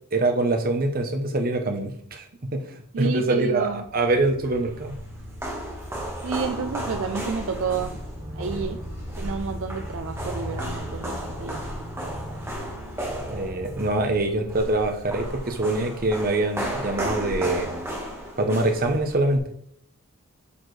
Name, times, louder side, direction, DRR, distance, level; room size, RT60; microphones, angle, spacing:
voice 1, 0.1-2.2 2.5-2.6 3.0-5.0 13.3-18.0 18.4-19.5, right 2 dB, 40° right, 5 dB, 0.9 m, -24 dB
voice 2, 2.9-3.8 6.2-8.0 8.4-8.8 9.2-11.9, right 5 dB, 65° right, 8 dB, 0.4 m, -30 dB
sound 1, 3.6-16.0, equal, 90° right, 2.0 m, -38 dB
sound 2, 4.4-19.4, right 1 dB, 10° right, 1.3 m, -34 dB
8.6 x 4.4 x 3.3 m, 0.69 s
head